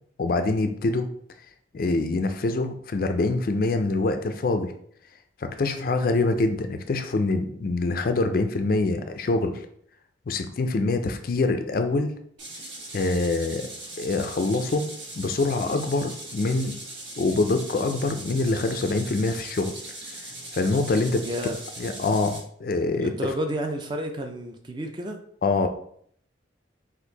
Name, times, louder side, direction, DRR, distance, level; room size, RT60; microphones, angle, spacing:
voice 1, 0.2-1.1 1.7-4.7 5.4-9.7 10.3-12.2 12.9-13.7 14.0-14.9 15.2-16.7 17.2-19.7 20.5-21.2 21.8-23.1 25.4-25.7, left 3 dB, 50° left, 8 dB, 0.4 m, -25 dB
sound 1, 12.4-22.4, right 1 dB, 85° right, 1.5 m, -40 dB
voice 2, 21.2-21.6 23.0-25.2, equal, 25° right, 4 dB, 0.4 m, -31 dB
4.4 x 2.5 x 3.9 m, 0.64 s
head